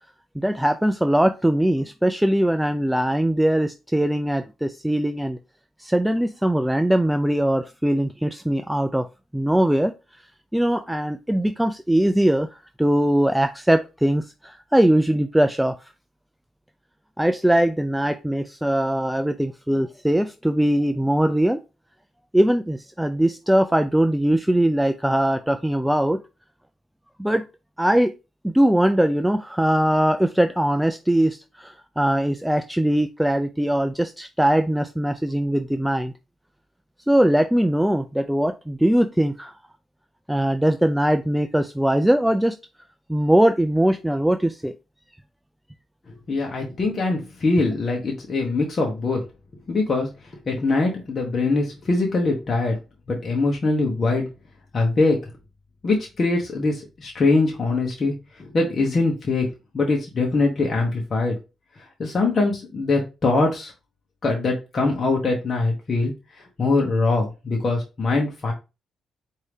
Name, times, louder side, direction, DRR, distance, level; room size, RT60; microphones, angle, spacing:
voice 1, 0.4-5.4 5.8-9.1 9.3-9.9 10.5-15.8 17.2-21.6 22.3-26.2 27.2-27.4 27.8-28.1 28.4-36.1 37.1-39.5 40.3-42.6 43.1-44.7, right 1 dB, 5° right, 8 dB, 0.3 m, -21 dB
voice 2, 46.1-49.3 49.7-50.1 50.5-52.8 53.1-54.3 54.7-55.2 55.8-58.1 58.4-59.5 59.7-61.3 62.0-63.7 64.2-66.1 66.6-68.5, left 3 dB, 40° left, 0 dB, 1.1 m, -22 dB
4.6 x 2.7 x 3.4 m, 0.28 s
cardioid pair, 90°, 0 cm